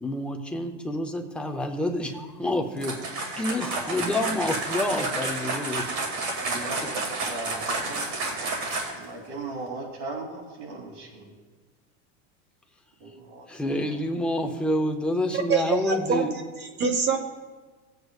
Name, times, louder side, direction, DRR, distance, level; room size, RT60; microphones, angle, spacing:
voice 1, 0.0-2.9 3.4-5.8 13.5-16.3, left 1 dB, 5° left, 1 dB, 0.5 m, -28 dB
sound 1, 2.8-9.1, right 3 dB, 45° right, 2.3 m, -30 dB
voice 2, 6.4-8.5 8.8-11.3 13.0-14.3, right 3 dB, 65° right, 0 dB, 3.0 m, -39 dB
voice 3, 15.3-16.2 16.6-17.2, right 5 dB, 30° right, 6 dB, 0.9 m, -25 dB
17.0 x 8.1 x 2.4 m, 1.3 s
supercardioid pair, 150°, 38 cm